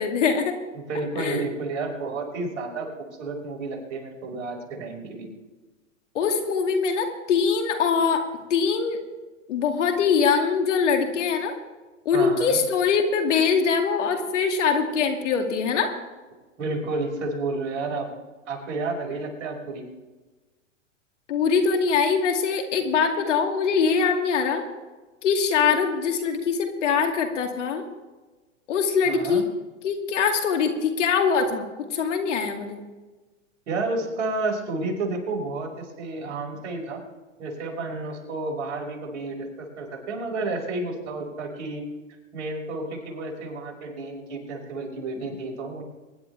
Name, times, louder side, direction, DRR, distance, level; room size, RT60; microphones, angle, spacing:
voice 1, 0.0-0.5 1.2-1.4 6.1-9.0 9.5-11.5 12.0-15.9 21.3-24.6 25.2-27.8 28.7-29.4 29.8-31.7 31.9-32.8, left 6 dB, 65° left, 4 dB, 2.6 m, -23 dB
voice 2, 0.7-2.9 3.2-5.3 12.1-12.6 16.6-18.1 18.5-19.8 29.0-29.4 33.7-37.0 37.4-41.8 42.3-45.8, right 3 dB, 60° right, 0 dB, 5.3 m, -31 dB
24.0 x 11.5 x 3.4 m, 1.2 s
hypercardioid pair, 115°, 39 cm